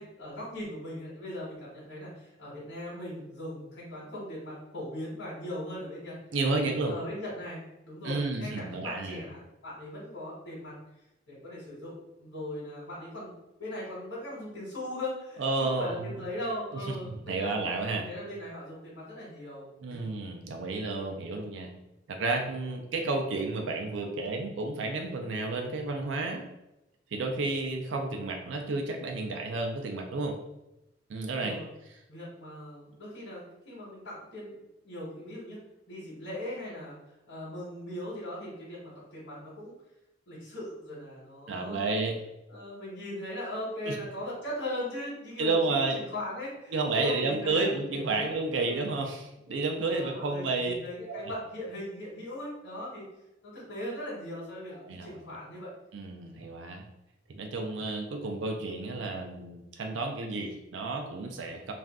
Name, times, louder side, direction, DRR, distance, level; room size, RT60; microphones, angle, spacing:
voice 1, 0.0-6.2 6.8-10.7 11.3-17.5 17.9-20.1 31.3-31.7 32.1-35.6 35.9-37.0 37.3-39.7 40.3-41.9 42.5-45.5 45.9-48.8 49.5-53.0 53.4-55.7 56.2-56.5, left 1 dB, 80° left, -6 dB, 1.0 m, -39 dB
voice 2, 6.3-6.9 8.0-9.2 15.4-16.1 16.7-16.8 17.1-18.1 19.8-21.7 22.1-26.4 27.1-30.4 31.1-31.6 41.5-42.2 43.9-44.0 45.4-46.0 46.7-50.7 51.1-51.2 54.8-55.2 55.9-56.8 57.3-61.7, right 3 dB, 80° right, 3 dB, 0.4 m, -31 dB
2.5 x 2.2 x 3.5 m, 0.92 s
head